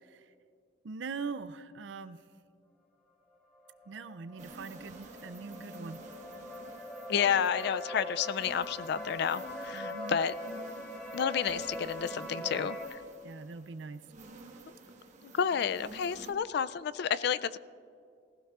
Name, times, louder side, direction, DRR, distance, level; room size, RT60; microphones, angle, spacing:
voice 1, 0.0-0.3 0.8-2.2 3.9-6.0 9.7-10.2 12.4-12.7 13.2-14.0, right 4 dB, 75° right, 12 dB, 0.5 m, -42 dB
sound 1, 3.5-12.8, left 1 dB, 10° left, 2.7 m, -42 dB
sound 2, 4.4-16.3, right 2 dB, 40° right, 1.2 m, -51 dB
voice 2, 7.1-10.3 11.1-12.8 15.2-17.6, left 7 dB, 60° left, 15 dB, 0.3 m, -30 dB
19.0 x 15.5 x 2.4 m, 2.3 s
head